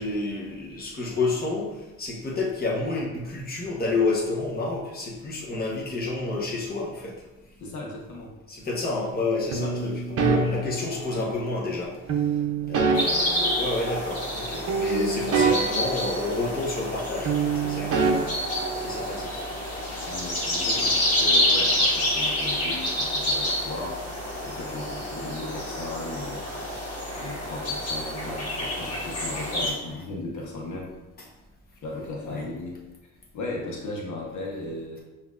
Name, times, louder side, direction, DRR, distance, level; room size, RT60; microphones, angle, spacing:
voice 1, 0.0-7.1 8.5-12.3 12.6-18.3 18.8-19.4 32.3-32.4, left 3 dB, 30° left, -3 dB, 1.1 m, -30 dB
voice 2, 7.6-8.3 20.1-26.4 27.2-30.9 31.8-32.8 33.3-35.0, left 2 dB, 70° left, -1 dB, 1.1 m, -36 dB
sound 1, 9.5-11.5 12.1-14.4 14.7-17.0 17.2-19.3, right 4 dB, 50° right, 0.7 m, -26 dB
sound 2, 12.9-29.7, left 1 dB, 55° left, 1.5 m, -28 dB
5.8 x 2.8 x 2.5 m, 1.1 s
cardioid pair, 90°, 30 cm